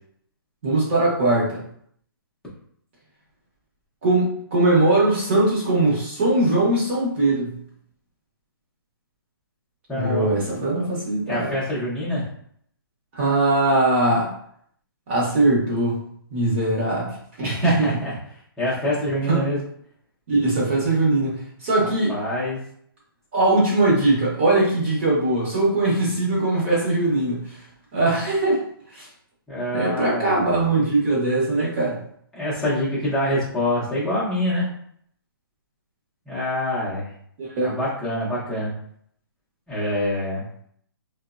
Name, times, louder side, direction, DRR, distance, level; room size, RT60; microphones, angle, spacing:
voice 1, 0.6-1.6 4.0-7.6 9.9-11.5 13.1-14.3 15.1-16.0 16.3-17.9 19.3-19.4 20.3-22.2 23.3-27.6 27.9-28.6 28.9-29.1 29.7-32.0 37.4-37.8, right 2 dB, 30° right, -5 dB, 0.8 m, -21 dB
voice 2, 9.9-10.3 11.3-12.2 17.4-18.1 18.6-19.6 21.8-22.6 29.5-30.9 32.3-34.7 36.3-37.1 37.6-38.7 39.7-40.4, left 1 dB, 5° left, -9 dB, 0.6 m, -25 dB
3.0 x 2.0 x 2.4 m, 0.66 s
hypercardioid pair, 170°, 13 cm